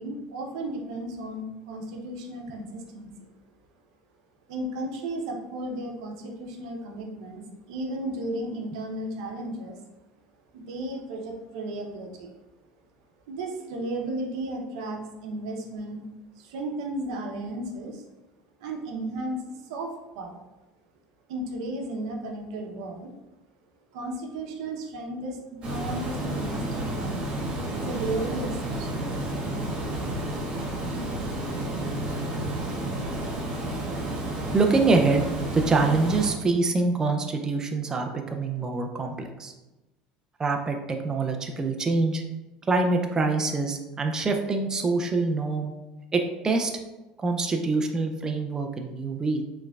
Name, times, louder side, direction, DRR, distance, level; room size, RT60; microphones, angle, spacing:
voice 1, 0.0-3.1 4.5-9.8 10.5-12.3 13.3-16.0 16.3-18.0 18.6-20.4 21.3-23.1 23.9-27.3 27.7-28.9, right 1 dB, 85° right, 1 dB, 0.7 m, -34 dB
Water, 25.6-36.3, right 1 dB, 40° right, 1.5 m, -31 dB
voice 2, 34.5-35.3 35.5-39.5 40.4-42.2 42.7-45.7 46.1-46.7 47.2-49.4, right 3 dB, 20° right, 4 dB, 0.4 m, -25 dB
4.3 x 3.3 x 2.3 m, 1.0 s
supercardioid pair, 115°, 3 cm